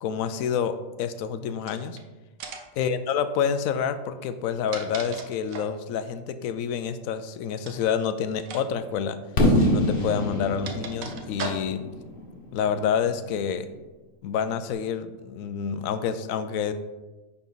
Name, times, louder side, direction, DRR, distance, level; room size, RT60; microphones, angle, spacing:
voice 1, 0.0-2.0 2.8-9.2 9.7-11.8 12.5-13.7 14.2-16.7, left 7 dB, 80° left, 11 dB, 1.0 m, -28 dB
sound 1, 1.6-2.0 2.4-2.8 4.3-5.8 7.6-7.9 8.4-8.6 8.9-9.0 10.0-11.9, right 4 dB, 85° right, 1.2 m, -38 dB
Fireworks, 9.4-13.2, left 1 dB, 45° left, 1.2 m, -25 dB
9.8 x 3.6 x 3.9 m, 1.2 s
omnidirectional pair, 1.4 m